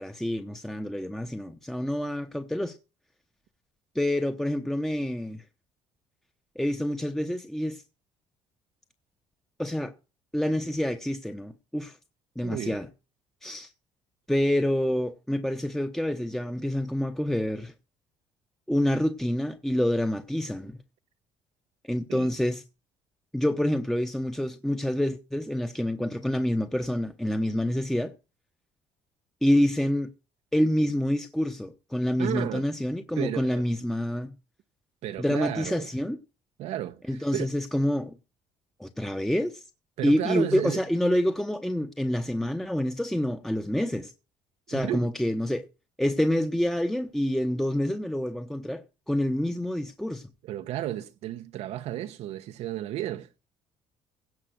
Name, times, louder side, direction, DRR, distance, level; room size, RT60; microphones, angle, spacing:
voice 1, 0.0-2.8 3.9-5.4 6.6-7.8 9.6-9.9 10.3-12.0 12.4-12.9 13.4-13.7 14.3-17.7 18.7-20.8 21.9-22.6 23.3-28.1 29.4-30.1 30.5-34.3 35.2-36.2 37.1-38.1 38.8-39.6 40.0-44.1 44.7-45.7 46.0-50.3, left 1 dB, 5° left, 0.9 m, -27 dB
voice 2, 12.4-12.8 22.1-22.3 32.2-32.7 33.2-33.6 35.0-35.9 36.6-37.5 40.0-40.8 44.7-45.1 50.5-53.3, right 13 dB, 70° right, 0.8 m, -33 dB
17.0 x 5.6 x 6.4 m
cardioid pair, 90°, 11 cm